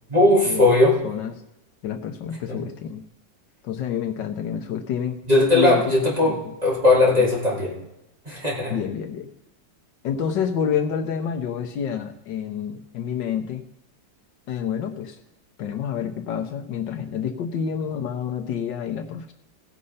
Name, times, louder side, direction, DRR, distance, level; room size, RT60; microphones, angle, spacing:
voice 1, 0.1-1.0 2.5-2.6 5.3-7.7 8.2-8.8, left 2 dB, 20° right, -5 dB, 3.3 m, -18 dB
voice 2, 1.0-1.4 1.8-3.0 3.6-5.2 5.5-5.8 6.3-6.4 8.7-9.3 10.0-13.6 14.5-15.2 15.6-19.3, left 8 dB, 75° left, 5 dB, 1.6 m, -28 dB
17.0 x 6.4 x 5.6 m, 0.91 s
omnidirectional pair, 2.0 m